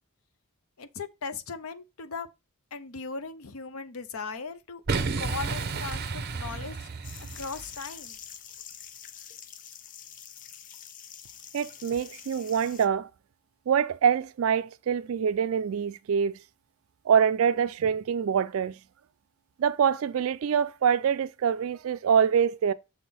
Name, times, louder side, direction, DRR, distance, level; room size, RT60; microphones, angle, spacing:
voice 1, 0.8-2.3 2.7-6.9 7.3-8.2, left 4 dB, 75° left, 0.7 m, -38 dB
Boom, 4.9-7.8, right 4 dB, 45° right, 0.7 m, -32 dB
sound 1, 7.0-12.9, left 9 dB, 35° left, 0.5 m, -46 dB
voice 2, 11.5-13.1 13.7-16.4 17.1-18.8 19.6-22.7, right 7 dB, 70° right, 0.4 m, -25 dB
6.6 x 3.7 x 4.2 m
head